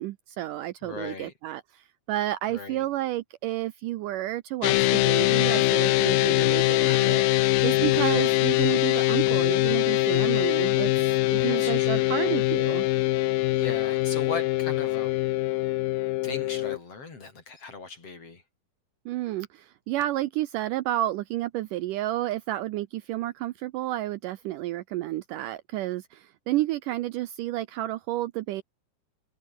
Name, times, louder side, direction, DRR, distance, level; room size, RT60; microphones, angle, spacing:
voice 1, 0.0-7.2 7.6-12.9 19.1-28.6, right 15 dB, 75° right, 2.1 m, -31 dB
voice 2, 0.8-1.3 2.5-2.8 7.9-8.3 11.3-12.3 13.5-15.2 16.2-18.4, left 4 dB, 40° left, 5.1 m, -38 dB
sound 1, 4.6-16.8, left 18 dB, 85° left, 2.6 m, -23 dB
omnidirectional pair, 4.2 m